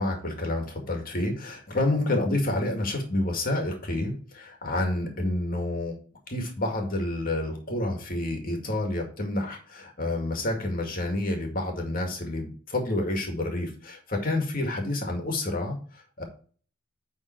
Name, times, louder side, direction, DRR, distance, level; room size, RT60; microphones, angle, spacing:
voice 1, 0.0-6.0 6.3-16.2, left 2 dB, 45° left, 2 dB, 2.1 m, -29 dB
9.9 x 4.0 x 4.6 m, 0.42 s
head